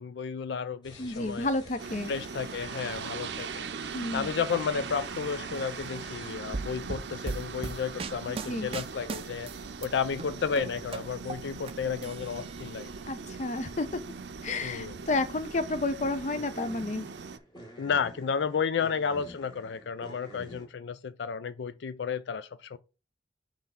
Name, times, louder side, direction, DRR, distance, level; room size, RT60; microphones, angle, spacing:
voice 1, 0.0-1.5 2.1-3.7 4.1-9.5 9.8-12.9 14.6-15.0 17.8-22.8, left 6 dB, 80° left, 0.4 m, -32 dB
sound 1, 0.8-20.7, equal, 25° left, 1.9 m, -50 dB
voice 2, 1.0-2.1 3.9-4.3 8.3-8.7 13.1-14.0 14.4-17.1, left 2 dB, 40° left, 0.6 m, -31 dB
sound 2, 1.8-17.4, right 5 dB, 80° right, 0.6 m, -40 dB
sound 3, 6.5-9.9 10.2-11.7 12.0-12.9, right 3 dB, 30° right, 0.4 m, -38 dB
5.7 x 3.4 x 5.6 m
head